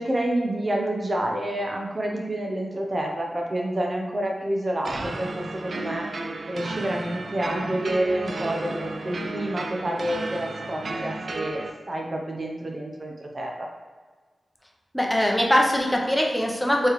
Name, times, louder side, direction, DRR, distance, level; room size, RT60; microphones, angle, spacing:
voice 1, 0.0-6.1 6.5-13.7, right 1 dB, 45° right, 1 dB, 0.8 m, -28 dB
sound 1, 4.8-11.7, right 2 dB, 65° right, 0.4 m, -33 dB
voice 2, 14.9-16.9, equal, 10° left, 0 dB, 0.8 m, -22 dB
4.5 x 3.1 x 3.2 m, 1.4 s
cardioid pair, 40°, 0 cm